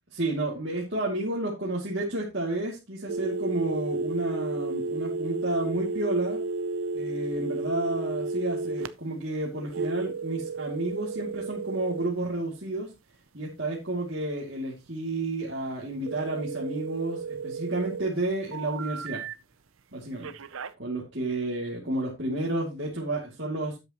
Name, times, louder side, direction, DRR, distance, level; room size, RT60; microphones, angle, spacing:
voice 1, 0.1-6.4 6.9-12.9 13.3-19.2 19.9-20.3 20.8-23.8, right 2 dB, 55° right, -4 dB, 2.7 m, -31 dB
sound 1, 3.1-8.9 9.7-12.1 16.1-18.1 18.5-19.3 20.2-20.7, right 3 dB, 85° right, 0.7 m, -32 dB
12.5 x 8.4 x 3.0 m, 0.25 s
head